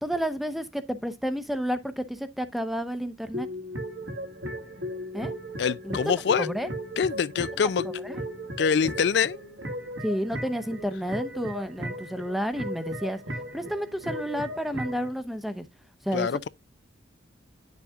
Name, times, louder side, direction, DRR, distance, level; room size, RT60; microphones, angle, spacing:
voice 1, 0.0-3.5 5.1-5.3 5.8-6.7 8.0-8.2 10.0-13.2 13.5-15.6 16.0-16.5, equal, ahead, 0.8 m, -31 dB
sound 1, 3.3-15.1, equal, 65° right, 1.9 m, -36 dB
voice 2, 5.6-6.5 7.0-7.9 8.6-9.4 16.1-16.5, left 6 dB, 60° left, 0.3 m, -25 dB
10.0 x 7.2 x 2.4 m
head